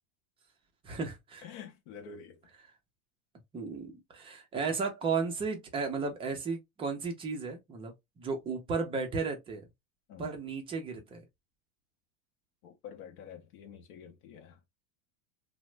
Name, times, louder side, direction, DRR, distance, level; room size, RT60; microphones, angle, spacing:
voice 1, 0.8-1.5 3.5-7.9 8.2-9.7 10.2-11.2, right 4 dB, 15° right, 0.4 m, -34 dB
voice 2, 1.4-2.4 10.1-10.3 12.6-14.6, left 7 dB, 50° left, 0.6 m, -48 dB
2.9 x 2.1 x 3.1 m
supercardioid pair, 145°, 42 cm